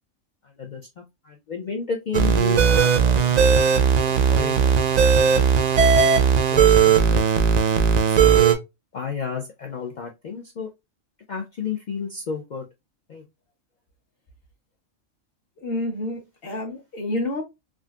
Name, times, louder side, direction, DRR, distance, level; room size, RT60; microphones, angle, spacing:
voice 1, 1.2-4.8 6.5-7.2 7.6-8.4 8.9-10.7 11.3-12.7 13.1-13.2, left 6 dB, 65° left, 0.4 m, -32 dB
sound 1, 2.1-8.5, right 7 dB, 75° right, 0.3 m, -17 dB
voice 2, 15.6-17.4, left 1 dB, 50° left, 1.1 m, -29 dB
3.8 x 2.3 x 2.2 m
omnidirectional pair, 1.3 m